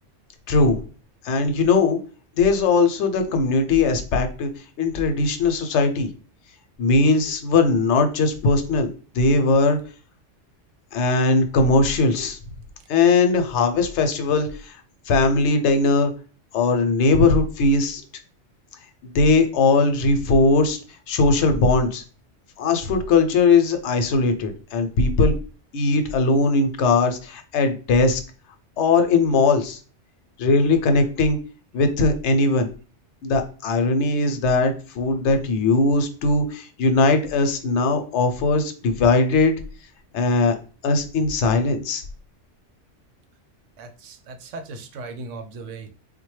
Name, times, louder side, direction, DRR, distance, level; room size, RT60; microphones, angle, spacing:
voice 1, 1.2-2.0 2.4-4.5 4.8-6.1 6.8-8.9 9.1-9.8 10.9-12.4 12.9-14.8 15.1-16.1 16.5-18.0 19.0-20.8 21.1-22.0 22.6-25.3 25.7-28.2 28.8-29.8 30.4-31.4 31.7-32.7 33.2-39.5 40.1-40.5 40.8-42.0, left 3 dB, 75° left, 6 dB, 0.9 m, -19 dB
voice 2, 43.8-45.9, right 3 dB, 85° right, 7 dB, 1.0 m, -37 dB
3.8 x 2.2 x 3.1 m, 0.37 s
omnidirectional pair, 1.2 m